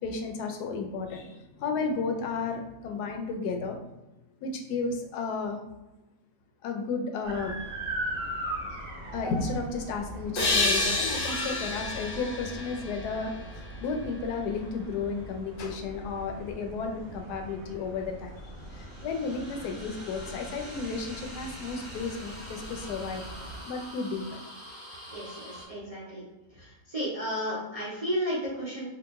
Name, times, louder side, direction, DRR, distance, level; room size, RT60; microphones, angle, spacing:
voice 1, 0.0-3.8 4.4-5.6 6.6-7.6 9.1-13.3 13.8-18.3 18.7-23.2 23.7-24.4, left 4 dB, 85° left, 4 dB, 1.1 m, -33 dB
sound 1, 7.2-23.6, right 1 dB, 80° right, 0.5 m, -40 dB
sound 2, 10.3-13.8, left 2 dB, 45° left, 0.8 m, -29 dB
sound 3, 10.5-15.7 18.1-25.7, equal, 20° left, 1.1 m, -47 dB
voice 2, 25.1-26.2 26.6-28.9, equal, 35° right, -9 dB, 0.6 m, -33 dB
2.9 x 2.5 x 3.4 m, 1.0 s
omnidirectional pair, 1.6 m